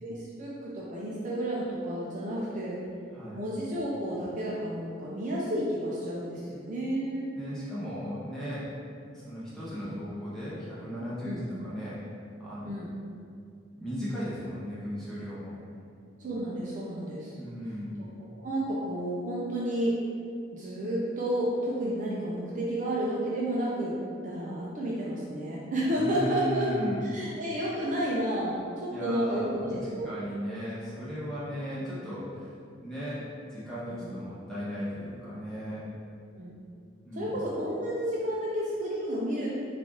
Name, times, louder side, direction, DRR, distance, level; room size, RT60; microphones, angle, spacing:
voice 1, 0.0-2.8 3.3-7.3 9.8-9.9 11.2-11.4 12.6-12.9 16.2-17.3 18.2-20.0 20.5-24.0 24.2-26.7 27.1-30.1 33.9-34.1 36.4-36.5 37.2-39.5, right 1 dB, 40° right, -6 dB, 0.4 m, -31 dB
voice 2, 7.4-8.7 9.1-12.8 13.8-15.6 17.3-17.9 25.9-27.0 28.9-29.7 30.0-35.8 37.0-37.4, equal, ahead, -11 dB, 1.0 m, -36 dB
3.3 x 2.5 x 3.7 m, 2.4 s
head